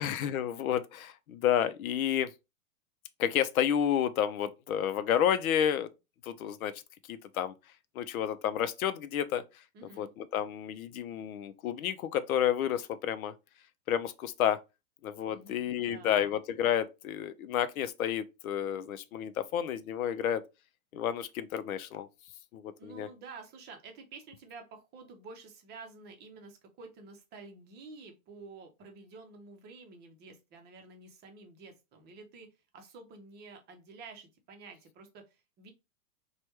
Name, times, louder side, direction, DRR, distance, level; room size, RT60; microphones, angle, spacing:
voice 1, 0.0-2.3 3.2-5.9 6.2-6.8 7.1-7.5 7.9-9.4 10.0-13.3 13.9-14.6 15.0-20.4 20.9-22.1 22.5-23.1, left 9 dB, 75° left, 0.6 m, -30 dB
voice 2, 9.7-10.1 15.3-16.2 22.8-35.7, right 4 dB, 25° right, 0.7 m, -50 dB
3.2 x 2.3 x 2.9 m
hypercardioid pair, 125°, 43 cm